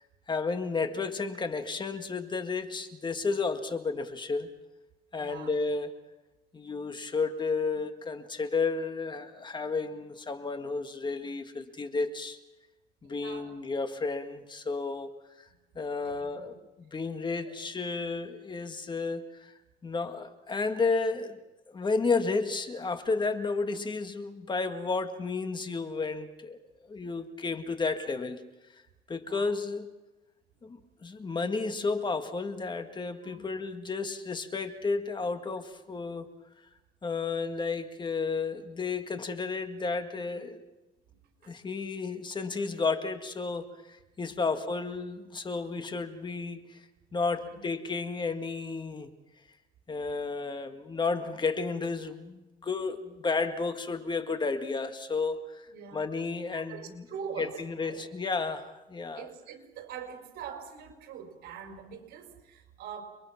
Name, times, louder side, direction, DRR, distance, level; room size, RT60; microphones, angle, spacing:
voice 1, 0.3-4.5 5.1-5.9 6.5-12.4 13.0-15.1 15.4-15.5 15.8-19.5 19.8-21.4 21.7-26.6 26.9-28.4 28.7-28.8 29.1-29.9 30.6-36.3 37.0-40.6 41.5-46.8 47.1-49.1 49.9-57.0 57.4-59.3, left 4 dB, 25° left, 8 dB, 1.8 m, -32 dB
voice 2, 5.1-5.5 13.0-13.5 16.0-16.5 17.4-17.6 29.3-29.5 33.2-33.5 41.4-41.5 47.4-47.6 55.7-56.1 56.5-58.0 59.1-63.0, right 7 dB, 75° right, 5 dB, 5.0 m, -44 dB
29.5 x 22.5 x 5.9 m, 1.0 s
cardioid pair, 110°, 17 cm